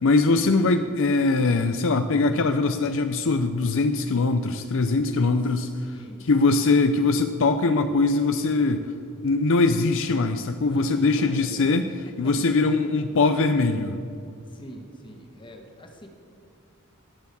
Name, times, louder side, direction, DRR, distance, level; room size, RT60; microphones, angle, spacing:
voice 1, 0.0-5.7 6.3-8.9 9.2-11.9 12.2-14.0, left 3 dB, 60° left, 8 dB, 0.6 m, -22 dB
voice 2, 5.5-6.6 10.6-12.3 14.4-16.1, equal, 20° left, 3 dB, 1.8 m, -44 dB
18.5 x 7.1 x 7.0 m, 2.4 s
head